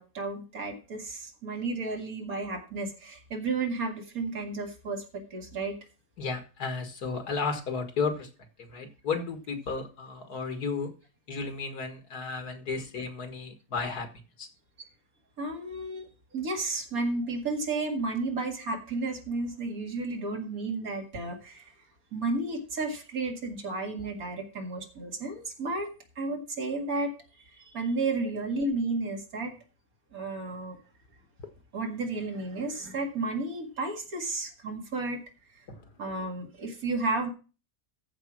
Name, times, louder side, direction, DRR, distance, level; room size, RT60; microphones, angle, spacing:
voice 1, 0.0-5.8 15.4-21.7 22.1-29.5 30.1-30.8 31.7-35.2 36.0-37.3, right 3 dB, 65° right, 3 dB, 2.4 m, -32 dB
voice 2, 6.2-8.3 8.7-10.9 11.3-14.1 14.4-14.5 28.2-28.3 35.7-35.8, left 4 dB, 80° left, 7 dB, 2.2 m, -33 dB
14.0 x 4.9 x 6.1 m, 0.34 s
omnidirectional pair, 1.6 m